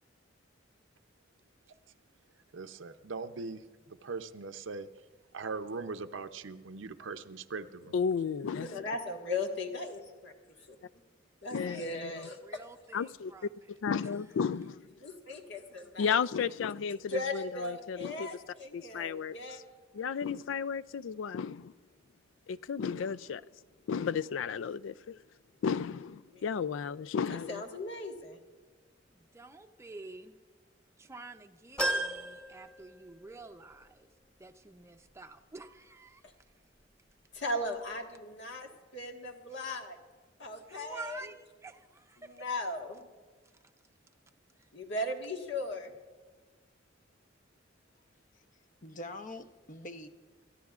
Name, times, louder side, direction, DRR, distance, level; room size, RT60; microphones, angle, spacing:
voice 1, 2.5-4.9 5.3-8.0, right 4 dB, 80° right, 0.6 m, -40 dB
voice 2, 7.9-8.7 11.5-12.1 12.9-13.3 13.8-14.8 16.0-18.3 18.7-19.4 19.9-21.7 22.5-23.4 23.9-25.2 25.6-27.6, left 6 dB, 85° left, 0.4 m, -33 dB
voice 3, 8.6-10.5 11.4-12.3 15.0-16.1 17.1-19.6 26.3-26.4 27.3-28.4 37.3-40.0 40.4-41.2 42.2-43.0 44.7-45.9, left 1 dB, 65° left, 1.6 m, -37 dB
voice 4, 11.6-13.5 14.0-14.2 29.1-30.3 31.0-34.1 34.4-36.2 39.5-39.7 40.7-42.4, right 3 dB, 15° right, 0.6 m, -49 dB
sound 1, 31.8-33.4 33.8-33.9 35.2-35.3, right 1 dB, 5° left, 1.5 m, -34 dB
voice 5, 48.3-50.1, left 1 dB, 45° left, 0.8 m, -45 dB
28.0 x 13.5 x 2.4 m
head